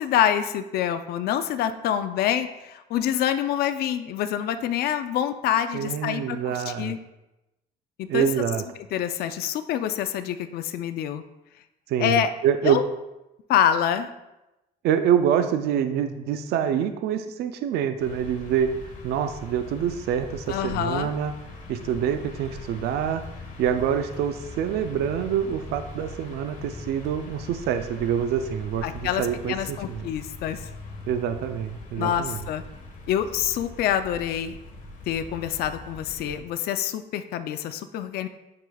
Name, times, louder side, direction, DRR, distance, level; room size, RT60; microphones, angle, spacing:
voice 1, 0.0-7.0 8.0-8.3 8.9-11.2 12.0-12.3 12.6-12.8 13.5-14.1 20.5-21.1 28.8-30.6 32.0-32.6 33.1-34.6 35.1-38.3, left 10 dB, 70° left, 9 dB, 0.5 m, -26 dB
voice 2, 5.7-7.0 8.1-8.6 11.9-12.8 14.8-18.7 19.0-21.3 21.7-23.2 23.6-30.1 31.1-32.4, right 8 dB, 75° right, 8 dB, 0.5 m, -26 dB
sound 1, 18.0-36.4, left 2 dB, 50° left, 1.4 m, -41 dB
9.4 x 4.9 x 2.3 m, 0.97 s
cardioid pair, 110°, 17 cm